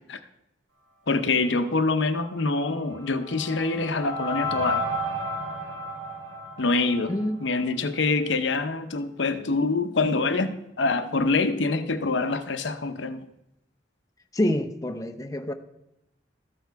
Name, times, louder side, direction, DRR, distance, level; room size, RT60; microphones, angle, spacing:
voice 1, 1.1-4.9 6.6-13.2, left 3 dB, 70° left, 0.8 m, -25 dB
sound 1, 2.6-7.7, equal, 90° right, 1.9 m, -33 dB
voice 2, 14.3-15.5, left 1 dB, 20° left, 0.6 m, -26 dB
13.5 x 6.7 x 4.6 m
head